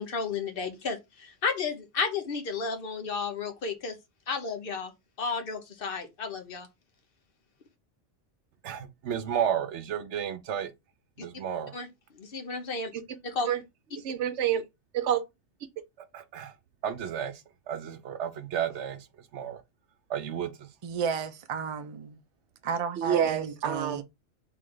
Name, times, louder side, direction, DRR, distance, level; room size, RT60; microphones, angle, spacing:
voice 1, 0.0-4.0 4.3-4.9 5.2-6.7 11.7-11.9 12.2-12.9 13.2-13.5, left 4 dB, 50° left, 1.1 m, -32 dB
voice 2, 8.6-10.7 11.2-11.7 12.9-13.0 13.5-13.6 14.0-14.6 14.9-15.2 16.1-16.5 16.8-17.3 17.7-19.0 19.3-19.6 20.1-20.5 23.0-24.0, right 9 dB, 70° right, 1.0 m, -30 dB
voice 3, 20.8-22.2 22.6-24.0, right 6 dB, 40° right, 0.4 m, -33 dB
3.8 x 3.2 x 3.8 m
omnidirectional pair, 1.2 m